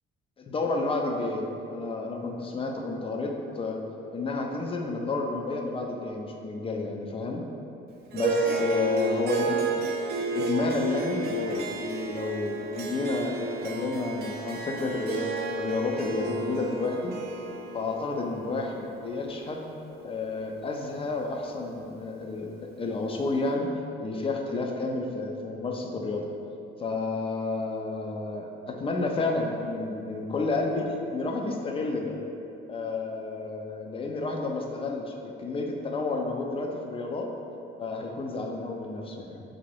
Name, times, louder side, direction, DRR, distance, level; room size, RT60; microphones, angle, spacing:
voice 1, 0.4-3.8 4.1-7.4 8.1-9.6 10.2-15.2 15.6-17.2 17.7-19.6 20.0-23.7 24.0-26.3 26.8-32.2 32.7-37.3 37.8-39.4, left 3 dB, 25° left, 1 dB, 0.4 m, -31 dB
Harp, 8.1-20.7, right 3 dB, 50° right, 0.4 m, -32 dB
2.8 x 2.5 x 3.2 m, 2.7 s
cardioid pair, 85°, 21 cm